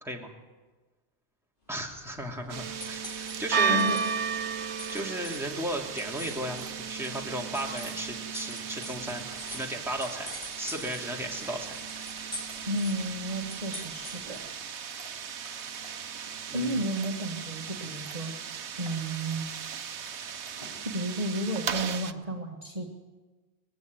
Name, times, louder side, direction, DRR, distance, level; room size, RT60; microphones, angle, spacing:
voice 1, 0.0-0.3 1.7-3.9 4.9-9.2 9.5-10.3 10.6-11.8 16.5-16.8, right 1 dB, ahead, -1 dB, 2.6 m, -35 dB
sound 1, 1.7-14.6, left 1 dB, 50° left, 4.0 m, -46 dB
sound 2, 2.5-22.1, right 6 dB, 90° right, 1.2 m, -35 dB
voice 2, 3.5-4.0 12.7-14.4 16.5-19.5 20.8-22.9, right 1 dB, 35° right, 0 dB, 1.8 m, -32 dB
sound 3, 5.1-5.7 6.1-6.8 7.2-9.0 9.2-10.4 10.8-11.5 11.8-15.9 16.3-18.2 18.6-19.4 19.7-20.8, left 1 dB, 30° left, 4.3 m, -54 dB
20.0 x 16.0 x 9.4 m, 1.3 s
omnidirectional pair, 1.1 m